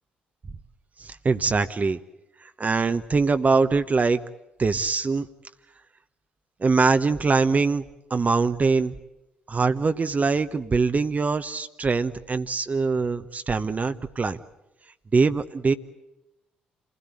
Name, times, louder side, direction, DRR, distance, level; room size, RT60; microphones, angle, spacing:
voice 1, 1.0-2.0 2.6-4.2 4.6-5.3 6.6-7.8 8.1-8.9 9.5-14.4 15.1-15.7, right 4 dB, 35° right, 9 dB, 1.0 m, -23 dB
28.0 x 17.0 x 9.7 m, 0.94 s
hypercardioid pair, 45°, 4 cm